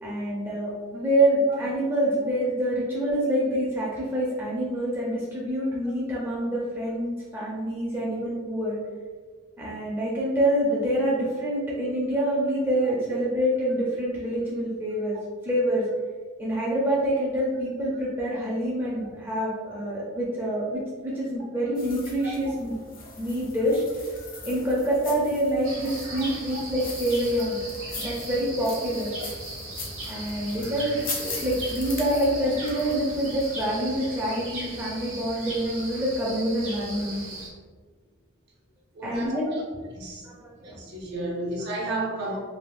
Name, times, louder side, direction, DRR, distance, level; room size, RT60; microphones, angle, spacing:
voice 1, 0.0-8.8 9.6-15.2 15.4-15.9 16.4-22.7 23.2-23.8 24.4-27.6 28.0-29.1 30.1-37.2 39.0-39.5 40.2-40.8, right 1 dB, 10° right, -6 dB, 0.5 m, -26 dB
sound 1, 21.7-33.6, left 3 dB, 40° left, 0.6 m, -40 dB
sound 2, 25.6-37.5, right 1 dB, 70° right, 1.2 m, -38 dB
voice 2, 38.9-39.6 39.9-40.2 40.6-42.4, right 2 dB, 50° right, -2 dB, 0.6 m, -33 dB
3.4 x 2.4 x 2.4 m, 1.5 s
head